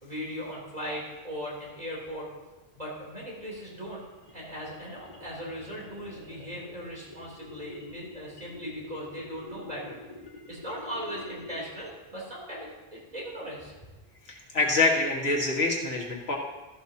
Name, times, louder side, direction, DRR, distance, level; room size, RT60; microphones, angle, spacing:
voice 1, 0.0-2.3 2.7-4.0 4.3-10.0 10.5-13.7, equal, 40° right, -5 dB, 3.6 m, -38 dB
sound 1, 3.3-11.9, left 2 dB, 35° left, 1.8 m, -46 dB
voice 2, 14.3-16.4, left 3 dB, 80° left, -2 dB, 2.1 m, -26 dB
13.5 x 11.0 x 2.9 m, 1.1 s
omnidirectional pair, 1.1 m